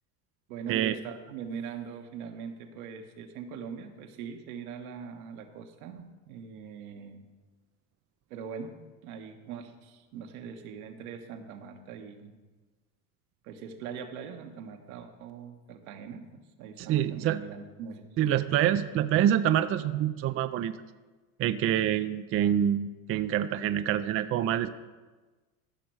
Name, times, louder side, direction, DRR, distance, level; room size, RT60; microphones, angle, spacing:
voice 1, 0.5-7.3 8.3-8.8 9.0-12.3 13.4-18.3, right 6 dB, 75° right, 5 dB, 1.4 m, -42 dB
voice 2, 16.8-17.4 18.2-20.8 21.4-24.7, right 10 dB, 30° right, 11 dB, 0.4 m, -26 dB
14.5 x 6.1 x 4.7 m, 1.3 s
hypercardioid pair, 95°, 45 cm